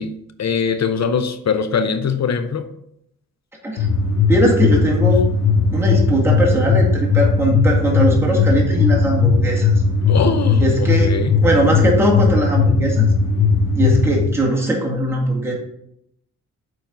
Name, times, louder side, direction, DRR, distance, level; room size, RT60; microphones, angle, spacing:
voice 1, 0.0-2.7 10.1-11.4, left 6 dB, 55° left, 10 dB, 0.7 m, -22 dB
sound 1, 3.8-14.2, left 4 dB, 85° left, 1.3 m, -17 dB
voice 2, 4.3-5.2 5.7-9.7 10.6-11.1 11.4-13.1 13.8-15.5, right 1 dB, 5° right, -3 dB, 1.9 m, -19 dB
7.0 x 4.5 x 3.8 m, 0.76 s
cardioid pair, 60°, 34 cm